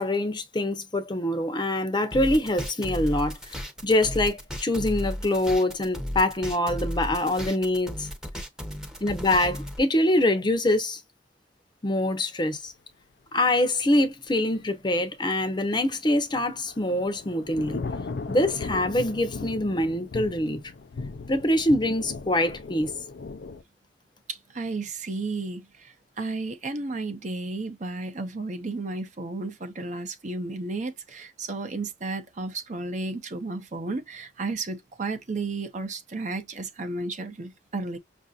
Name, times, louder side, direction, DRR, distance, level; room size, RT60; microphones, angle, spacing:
voice 1, 0.0-8.1 9.0-11.0 11.8-12.7 13.3-17.8 18.3-20.6 21.3-22.9, left 1 dB, 25° left, 0.7 m, -24 dB
sound 1, 2.1-9.8, equal, 5° right, 0.8 m, -34 dB
Thunder / Rain, 16.2-23.6, left 4 dB, 70° left, 0.5 m, -37 dB
voice 2, 24.3-38.0, right 3 dB, 45° right, 0.7 m, -33 dB
5.6 x 2.6 x 2.4 m
head